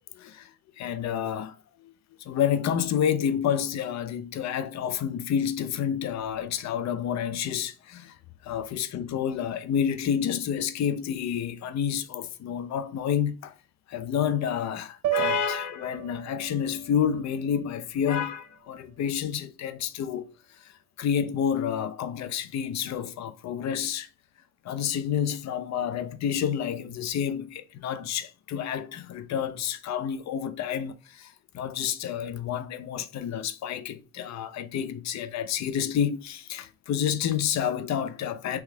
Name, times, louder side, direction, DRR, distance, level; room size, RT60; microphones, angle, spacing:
voice 1, 0.1-0.5 0.8-1.9 2.2-8.2 8.4-13.5 13.9-20.7 21.0-24.1 24.6-38.6, left 8 dB, 60° left, 0.7 m, -29 dB
sound 1, 15.0-19.3, right 14 dB, 65° right, 0.5 m, -35 dB
3.4 x 3.1 x 4.6 m
supercardioid pair, 80°, 31 cm